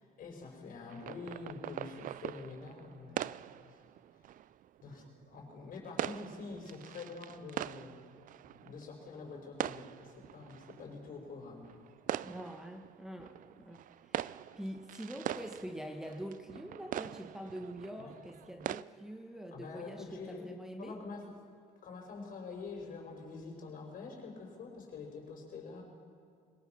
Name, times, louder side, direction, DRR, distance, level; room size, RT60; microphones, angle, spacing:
voice 1, 0.0-3.5 4.8-8.3 8.6-11.7 18.0-18.1 19.5-20.5 20.8-21.4 21.8-25.8, left 4 dB, 55° left, 2 dB, 5.4 m, -46 dB
sound 1, 0.9-18.8, right 12 dB, 50° right, 0.5 m, -43 dB
voice 2, 12.2-14.3 14.5-21.0, equal, 5° right, 3 dB, 1.3 m, -45 dB
22.5 x 19.5 x 6.0 m, 2.4 s
cardioid pair, 110°, 17 cm